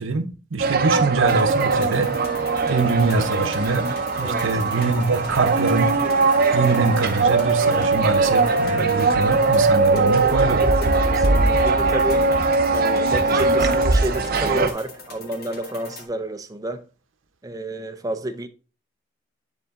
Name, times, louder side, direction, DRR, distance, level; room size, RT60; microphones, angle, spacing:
voice 1, 0.0-2.1 2.7-3.9 4.2-5.9 6.5-10.6, right 3 dB, 80° right, 0.8 m, -23 dB
sound 1, 0.6-14.7, right 3 dB, 50° right, 0.8 m, -20 dB
sound 2, 1.3-16.0, left 3 dB, 50° left, 1.6 m, -42 dB
voice 2, 4.2-4.6 10.9-12.2 12.7-16.8 17.4-18.5, right 1 dB, 20° right, 0.5 m, -30 dB
9.8 x 3.9 x 3.6 m
head